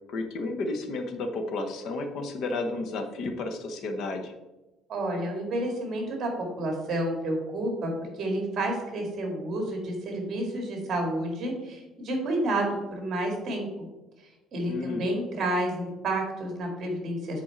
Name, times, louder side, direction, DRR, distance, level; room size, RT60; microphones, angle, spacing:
voice 1, 0.1-4.3 14.7-15.1, left 2 dB, 50° left, 6 dB, 0.9 m, -32 dB
voice 2, 4.9-6.3 6.6-7.9 8.2-13.9 14.5-17.4, right 1 dB, 40° right, 2 dB, 1.9 m, -30 dB
7.3 x 4.4 x 4.4 m, 1.1 s
cardioid pair, 170°, 0 cm